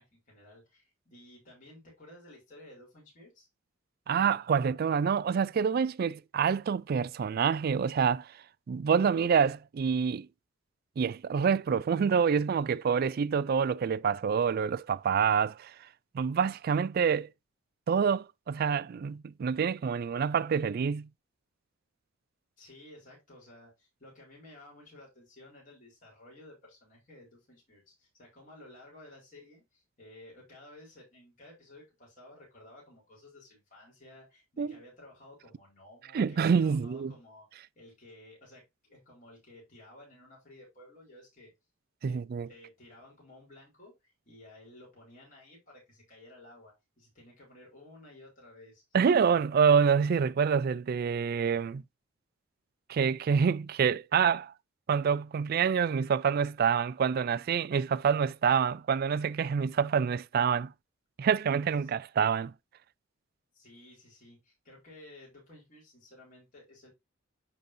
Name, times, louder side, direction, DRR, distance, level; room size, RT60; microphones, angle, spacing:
voice 1, 0.0-3.5 22.6-41.5 42.0-48.8 61.8-61.9 63.5-66.9, left 1 dB, 40° left, 4.2 m, -54 dB
voice 2, 4.1-8.3 8.7-10.3 11.0-15.7 16.1-17.3 17.9-21.1 34.6-34.7 36.1-37.1 42.0-42.5 48.9-51.8 52.9-54.5 54.9-60.7 61.2-62.5, right 6 dB, 45° right, 0.3 m, -27 dB
10.5 x 4.0 x 2.7 m
head